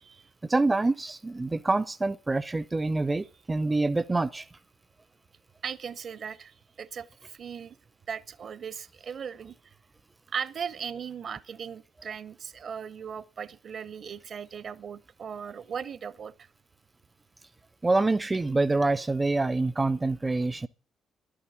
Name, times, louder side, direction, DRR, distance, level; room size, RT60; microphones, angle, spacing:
voice 1, 0.4-4.5 17.8-20.7, right 2 dB, 20° right, 0.5 m, -26 dB
voice 2, 5.6-7.8 8.1-9.5 10.3-16.5, right 7 dB, 50° right, 0.8 m, -38 dB
11.5 x 8.6 x 8.7 m
figure-of-eight pair, 40°, 0 cm